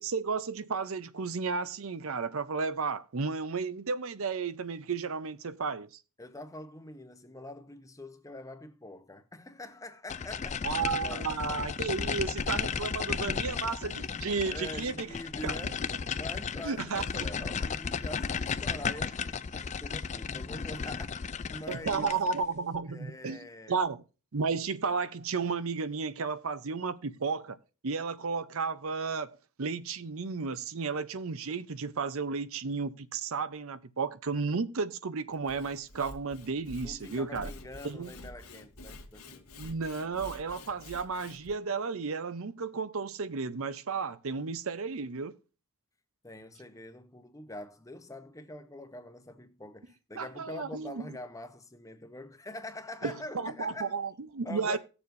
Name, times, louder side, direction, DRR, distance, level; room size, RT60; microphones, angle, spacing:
voice 1, 0.0-5.9 10.6-15.1 15.4-15.7 16.6-17.3 21.7-23.4 23.7-24.0 24.3-27.6 27.8-37.5 37.8-38.1 39.6-45.3 50.2-51.1 53.0-54.8, right 4 dB, 65° right, 0.6 m, -33 dB
voice 2, 6.2-10.6 10.9-11.3 14.2-15.8 16.1-22.1 22.9-23.8 36.8-39.5 46.2-53.9 54.4-54.8, left 1 dB, 15° left, 0.8 m, -45 dB
sound 1, 10.1-22.4, left 6 dB, 30° left, 0.4 m, -34 dB
Sawing / Wood, 35.3-41.5, left 1 dB, 75° left, 1.6 m, -48 dB
17.5 x 7.0 x 2.6 m
head